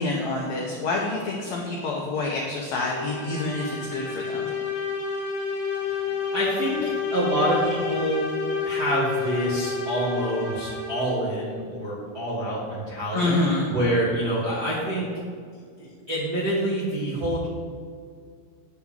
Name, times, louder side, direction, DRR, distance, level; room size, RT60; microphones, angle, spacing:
voice 1, 0.0-4.5 13.1-13.7, left 2 dB, 85° left, -2 dB, 1.6 m, -27 dB
sound 1, 2.8-11.2, left 4 dB, 65° left, 2.4 m, -30 dB
voice 2, 5.7-8.2 8.6-13.4 13.7-15.2 15.8-17.5, right 1 dB, 50° right, -10 dB, 1.1 m, -27 dB
10.0 x 3.6 x 7.1 m, 2.1 s
omnidirectional pair, 4.4 m